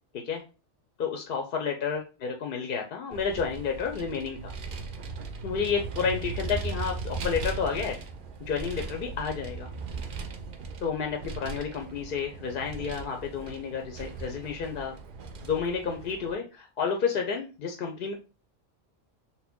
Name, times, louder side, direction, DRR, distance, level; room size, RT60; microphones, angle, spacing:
voice 1, 1.0-4.5 5.4-8.0 8.4-9.7 10.8-14.9 15.4-18.1, left 6 dB, 60° left, 3 dB, 0.6 m, -31 dB
Vehicle, 3.1-16.3, right 4 dB, 60° right, 0.6 m, -38 dB
2.8 x 2.2 x 3.4 m, 0.32 s
omnidirectional pair, 1.2 m